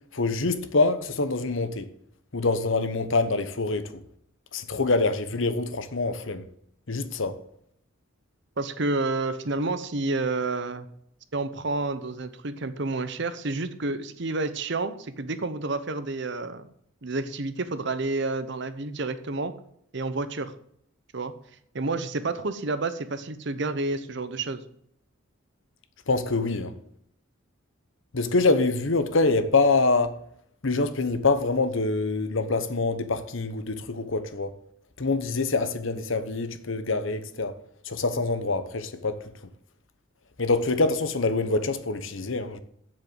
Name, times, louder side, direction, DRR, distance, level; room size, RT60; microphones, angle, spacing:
voice 1, 0.1-1.9 2.3-3.9 4.5-6.4 6.9-7.4 26.1-26.7 28.1-30.1 30.6-34.5 35.0-37.5 37.8-39.2 40.4-42.6, left 3 dB, 65° left, 1.0 m, -25 dB
voice 2, 8.6-10.9 11.3-16.6 17.0-19.5 19.9-20.5 21.1-21.3 21.7-24.6, right 3 dB, 55° right, 0.9 m, -29 dB
7.6 x 7.5 x 8.0 m
head